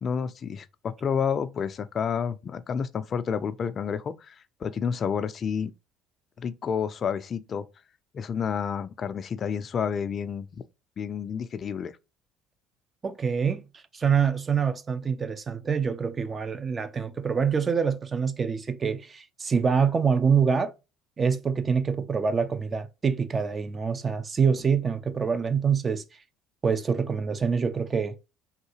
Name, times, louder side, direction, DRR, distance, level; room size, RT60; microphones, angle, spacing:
voice 1, 0.0-4.4 4.6-5.7 6.4-7.7 8.1-10.5 11.0-12.0, left 7 dB, 45° left, 0.3 m, -30 dB
voice 2, 13.0-13.6 13.9-20.7 21.2-26.0 26.6-28.2, right 6 dB, 35° right, 0.5 m, -25 dB
3.6 x 2.3 x 2.7 m
supercardioid pair, 75°, 0 cm